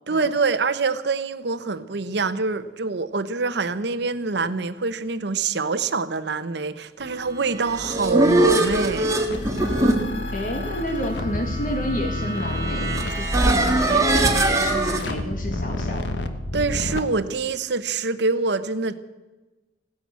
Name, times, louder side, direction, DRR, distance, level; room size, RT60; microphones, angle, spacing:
voice 1, 0.1-9.1 16.5-18.9, right 4 dB, 70° right, 12 dB, 0.9 m, -25 dB
sound 1, 7.5-15.0, right 2 dB, 20° right, 1.9 m, -22 dB
sound 2, 9.3-17.0, left 1 dB, 75° left, 1.2 m, -30 dB
voice 2, 10.3-16.1, equal, 50° left, 3 dB, 2.0 m, -30 dB
16.0 x 10.5 x 8.4 m, 1.1 s
head